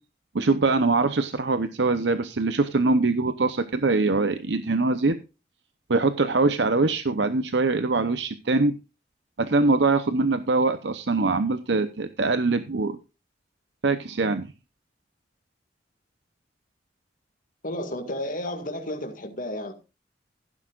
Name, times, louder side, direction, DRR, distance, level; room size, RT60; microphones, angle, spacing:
voice 1, 0.3-5.2 5.9-8.7 9.4-13.0 13.8-14.5, right 3 dB, 80° right, 0.8 m, -23 dB
voice 2, 17.6-19.7, left 1 dB, 50° left, 2.1 m, -32 dB
15.5 x 9.8 x 2.5 m
head